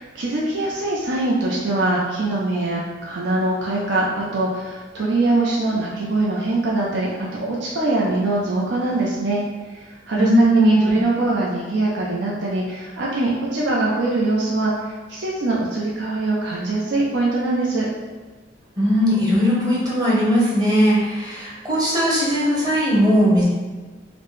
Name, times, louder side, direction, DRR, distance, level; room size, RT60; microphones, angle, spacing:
voice 1, 0.0-9.4 9.7-17.9, right 2 dB, 70° right, -5 dB, 0.5 m, -23 dB
voice 2, 10.2-10.9 18.8-23.4, equal, 20° right, -6 dB, 0.9 m, -18 dB
4.2 x 2.1 x 3.1 m, 1.3 s
head